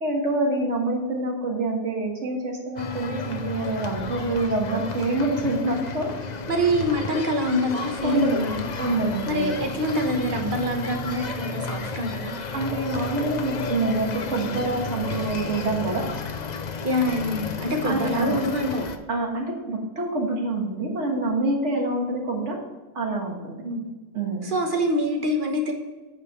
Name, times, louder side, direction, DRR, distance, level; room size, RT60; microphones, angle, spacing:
voice 1, 0.0-6.1 6.6-6.7 8.0-8.4 8.8-9.5 12.5-16.0 17.8-18.4 19.1-22.6 23.0-23.6 24.1-24.5, right 2 dB, 60° right, 1 dB, 1.8 m, -26 dB
sound 1, 2.8-19.0, left 4 dB, 45° left, 0.5 m, -33 dB
voice 2, 6.5-8.6 9.3-12.3 16.8-18.9 23.6-23.9 24.4-25.7, equal, 40° right, 2 dB, 1.3 m, -25 dB
8.6 x 4.9 x 5.6 m, 1.2 s
omnidirectional pair, 1.4 m